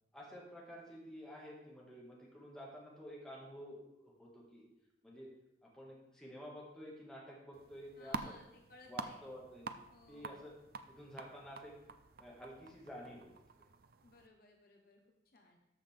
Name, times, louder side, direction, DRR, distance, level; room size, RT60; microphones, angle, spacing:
voice 1, 0.1-4.7 5.0-5.3 5.6-8.4 8.9-9.7 10.1-10.5 10.9-11.7 12.2-13.3 13.6-13.7, equal, 5° left, -4 dB, 1.8 m, -51 dB
sound 1, 7.5-14.3, right 4 dB, 55° right, 0.4 m, -48 dB
voice 2, 7.9-9.3 9.9-10.3 14.0-15.6, left 2 dB, 50° left, 2 dB, 1.0 m, -61 dB
13.0 x 5.7 x 3.5 m, 0.90 s
head